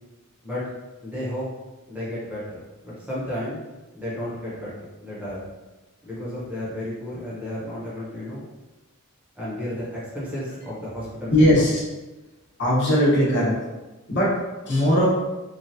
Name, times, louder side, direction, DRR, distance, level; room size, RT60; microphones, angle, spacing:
voice 1, 1.0-1.5 1.9-3.6 3.9-5.5 6.0-8.4 9.4-11.5, left 1 dB, 5° right, -9 dB, 0.7 m, -33 dB
voice 2, 11.3-11.8 12.6-13.5 14.1-14.3 14.7-15.1, equal, 55° left, -7 dB, 1.0 m, -19 dB
3.1 x 2.3 x 2.7 m, 1.1 s
head